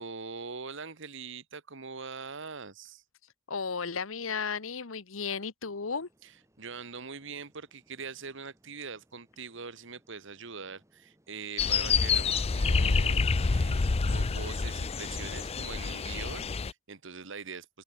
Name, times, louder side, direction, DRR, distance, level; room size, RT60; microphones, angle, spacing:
voice 1, 0.0-3.0 6.2-17.8, right 5 dB, 65° right, 1.9 m, -43 dB
voice 2, 3.5-6.1, left 5 dB, 85° left, 1.2 m, -34 dB
sound 1, 5.6-13.4, equal, 15° right, 7.5 m, -68 dB
sound 2, 11.6-16.7, left 4 dB, 30° left, 0.5 m, -27 dB
open air
head